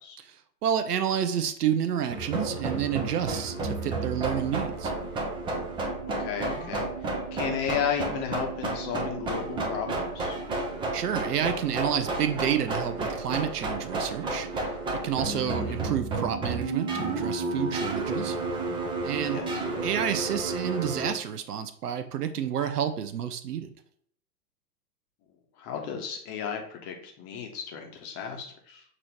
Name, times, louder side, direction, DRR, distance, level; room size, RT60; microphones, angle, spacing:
voice 1, 0.2-4.9 10.9-14.5 14.9-18.4 19.0-19.4 19.8-23.7, right 9 dB, 75° right, 10 dB, 0.7 m, -29 dB
sound 1, 2.1-21.1, right 3 dB, 10° right, 0.5 m, -31 dB
voice 2, 6.2-10.4 15.3-15.8 19.2-19.6 25.6-28.8, left 7 dB, 30° left, 3 dB, 0.9 m, -34 dB
6.0 x 2.9 x 3.0 m, 0.63 s
figure-of-eight pair, 100°, 47 cm